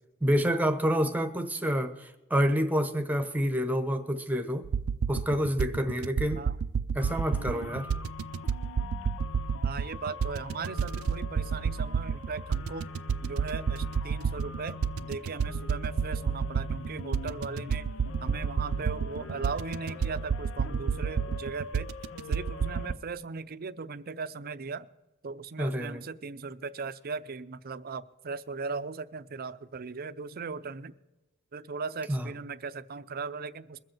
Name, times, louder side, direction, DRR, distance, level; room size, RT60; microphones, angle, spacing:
voice 1, 0.2-4.7 5.1-6.4 6.9-7.9 25.6-26.0 32.1-32.3, equal, 10° right, 7 dB, 1.0 m, -28 dB
sound 1, 4.6-22.9, right 6 dB, 90° right, 0.4 m, -30 dB
sound 2, 7.0-23.0, left 4 dB, 65° left, 0.6 m, -44 dB
voice 2, 9.6-12.9 13.2-17.9 18.2-21.9 22.3-24.9 25.2-30.9 31.5-33.8, right 4 dB, 45° right, 12 dB, 0.6 m, -38 dB
22.0 x 7.7 x 4.6 m, 1.0 s
head